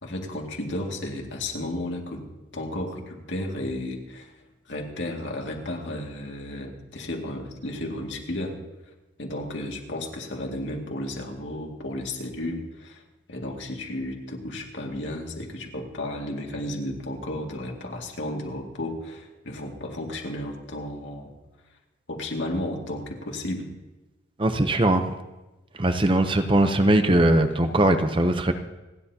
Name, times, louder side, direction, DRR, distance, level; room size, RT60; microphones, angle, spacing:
voice 1, 0.0-2.2 2.5-4.3 4.7-8.6 9.2-13.0 13.3-21.3 22.1-23.7, left 1 dB, 75° left, 1 dB, 2.2 m, -33 dB
voice 2, 24.4-25.1 25.7-28.5, right 1 dB, 25° right, 8 dB, 0.7 m, -20 dB
28.5 x 10.5 x 2.8 m, 1.1 s
head